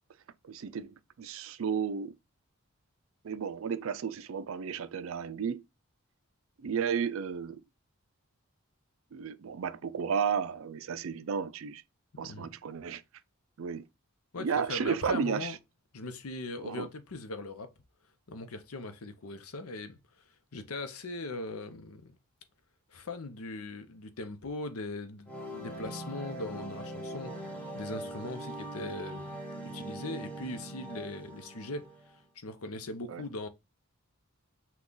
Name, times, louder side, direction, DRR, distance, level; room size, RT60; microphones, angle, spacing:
voice 1, 0.4-2.1 3.2-5.6 6.6-7.6 9.1-11.8 12.2-13.0 13.6-13.8 14.4-15.6 16.6-16.9 33.1-33.2, right 6 dB, 60° right, 0.4 m, -33 dB
voice 2, 12.2-12.5 14.3-15.6 15.9-17.7 18.3-20.0 20.5-22.2 22.9-31.9 32.4-33.5, left 2 dB, 80° left, 0.7 m, -40 dB
sound 1, 25.3-32.2, right 1 dB, 5° left, 1.2 m, -41 dB
5.9 x 2.3 x 3.8 m
head